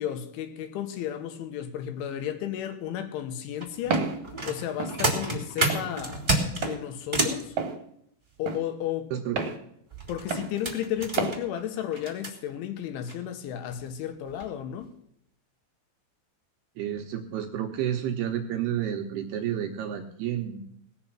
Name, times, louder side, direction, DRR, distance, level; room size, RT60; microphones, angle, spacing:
voice 1, 0.0-4.1 4.5-7.6 8.4-9.1 10.1-14.9, left 10 dB, 80° left, 3.6 m, -33 dB
sound 1, 3.6-7.4 9.9-12.3 13.1-13.2 13.6-13.8 14.3-14.5 14.8-14.9, right 2 dB, 10° right, 1.5 m, -30 dB
Walk footsteps, 3.9-4.2 4.8-5.0 5.7-5.9 6.6-6.8 7.6-7.8 8.5-8.6 9.4-9.6 10.3-10.5 11.2-11.4, right 5 dB, 55° right, 2.3 m, -28 dB
voice 2, 16.8-20.6, right 10 dB, 75° right, 2.5 m, -30 dB
18.5 x 6.8 x 7.3 m
omnidirectional pair, 5.5 m